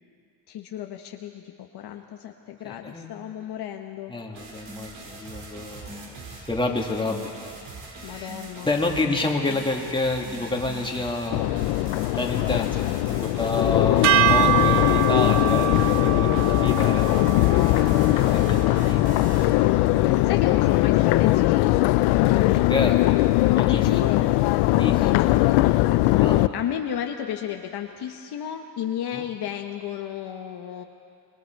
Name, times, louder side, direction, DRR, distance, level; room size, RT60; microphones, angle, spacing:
voice 1, 0.5-4.1 8.0-8.7 20.0-21.9 23.7-24.3 25.0-25.6 26.0-26.2 26.5-30.8, left 10 dB, 55° left, 3 dB, 1.2 m, -33 dB
voice 2, 2.6-3.1 4.1-6.2 6.5-7.5 7.9-11.7 12.1-17.2 18.2-19.0 22.3-23.1 23.5-23.9 24.7-25.4 26.1-26.6 29.1-29.3, left 2 dB, 10° left, 0 dB, 2.4 m, -29 dB
sound 1, 4.3-19.5, right 3 dB, 65° right, 5.1 m, -41 dB
Crowd, 11.3-26.5, left 17 dB, 80° left, 0.7 m, -20 dB
sound 2, 14.0-20.4, right 12 dB, 35° right, 0.5 m, -26 dB
26.5 x 21.0 x 4.6 m, 2.4 s
cardioid pair, 105°, 48 cm